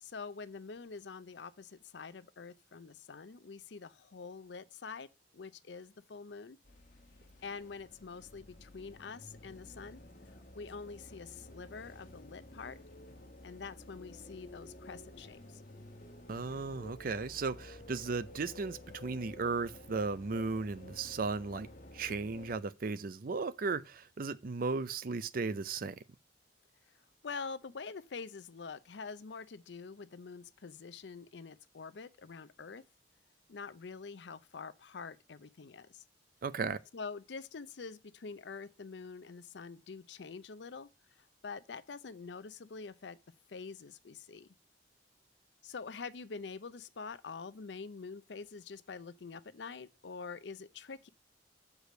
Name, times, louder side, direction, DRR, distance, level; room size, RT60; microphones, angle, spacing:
voice 1, 0.0-5.1 5.3-6.6 7.4-10.0 10.5-12.8 13.4-15.6 27.2-32.8 33.5-36.0 36.9-40.9 41.2-43.2 43.5-44.5 45.6-51.1, left 5 dB, 70° left, 0.6 m, -46 dB
sound 1, 6.6-22.6, left 1 dB, 50° left, 1.3 m, -52 dB
voice 2, 16.3-21.7 21.9-26.0 36.4-36.8, right 4 dB, 50° right, 0.5 m, -36 dB
6.7 x 4.8 x 6.3 m
head